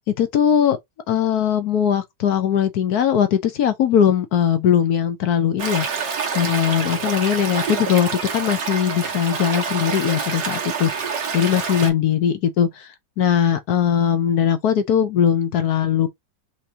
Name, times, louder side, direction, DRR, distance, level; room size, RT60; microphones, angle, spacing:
voice 1, 0.2-0.8 1.1-5.9 6.3-10.9 11.3-12.9 13.2-16.1, left 9 dB, 65° left, 1.2 m, -20 dB
Stream, 5.6-11.9, right 5 dB, 60° right, 1.8 m, -27 dB
5.8 x 3.2 x 2.8 m
omnidirectional pair, 1.9 m